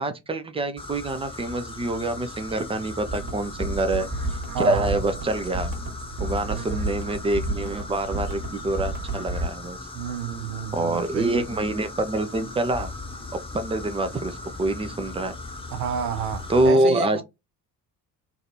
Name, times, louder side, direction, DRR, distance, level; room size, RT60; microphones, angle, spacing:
voice 1, 0.0-4.4 4.6-5.7 6.2-9.8 10.7-12.9 13.5-15.3 16.5-17.2, right 2 dB, 15° right, 0.3 m, -26 dB
sound 1, 0.8-16.7, left 2 dB, 10° left, 0.8 m, -38 dB
marching stuff, 3.1-9.5, right 2 dB, 45° right, 1.4 m, -31 dB
voice 2, 4.5-5.0 6.5-6.8 9.9-11.6 15.7-17.2, right 8 dB, 70° right, 0.7 m, -31 dB
3.2 x 2.3 x 2.7 m
figure-of-eight pair, 50°, 50 cm